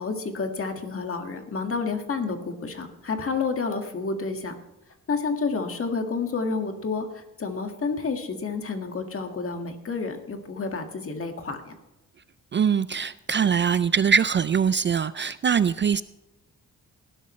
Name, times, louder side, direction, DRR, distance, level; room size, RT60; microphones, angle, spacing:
voice 1, 0.0-4.5 5.1-7.1 7.4-11.7, left 4 dB, 45° left, 5 dB, 1.9 m, -29 dB
voice 2, 12.5-16.0, right 7 dB, 35° right, 15 dB, 0.4 m, -22 dB
18.5 x 11.5 x 3.2 m, 0.98 s
wide cardioid pair, 135°, 32 cm